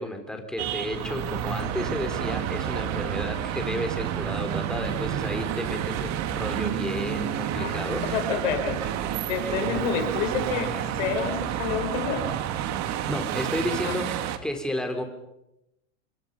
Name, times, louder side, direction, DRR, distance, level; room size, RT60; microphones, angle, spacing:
voice 1, 0.0-8.0 13.1-14.2 14.4-15.0, left 1 dB, ahead, 4 dB, 4.0 m, -32 dB
sound 1, 0.6-14.4, right 10 dB, 45° right, 2.3 m, -29 dB
voice 2, 7.6-8.9 9.3-10.7 10.9-12.2 13.8-14.0, left 7 dB, 75° left, 4 dB, 6.6 m, -29 dB
27.5 x 24.5 x 5.6 m, 0.87 s
supercardioid pair, 125°, 37 cm